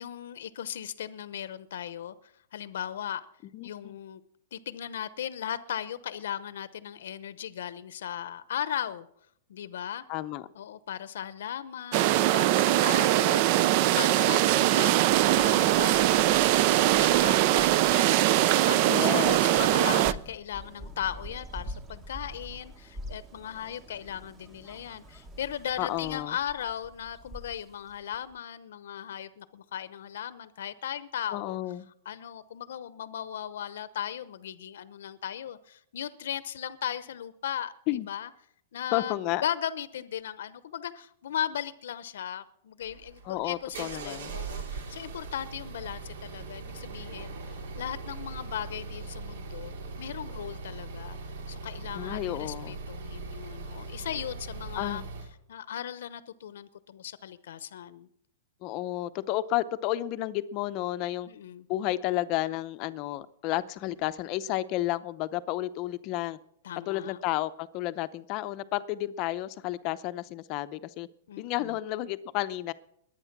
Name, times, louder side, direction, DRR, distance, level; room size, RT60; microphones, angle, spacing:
voice 1, 0.0-3.2 3.6-4.2 4.5-9.1 9.5-10.0 10.5-13.7 14.0-18.2 18.6-31.6 32.0-38.3 38.7-39.2 39.4-51.2 51.5-55.0 55.5-58.1 61.3-61.6 66.6-67.2 71.3-71.8, left 10 dB, 70° left, 0.8 m, -37 dB
voice 2, 3.5-4.0 10.1-10.5 18.9-19.7 19.9-20.2 25.8-26.4 31.3-31.9 37.9-38.1 38.9-39.5 43.2-44.4 51.9-52.8 54.8-55.1 58.6-61.3 61.7-66.4 66.9-71.1 71.4-72.7, left 15 dB, 30° left, 0.7 m, -32 dB
sound 1, 11.9-20.1, right 14 dB, 35° right, 0.5 m, -22 dB
Bird vocalization bird call bird song, 15.1-28.4, equal, 15° right, 1.1 m, -46 dB
sound 2, 42.8-55.3, right 3 dB, 70° right, 3.2 m, -40 dB
21.5 x 9.1 x 6.0 m
supercardioid pair, 165°, 0 cm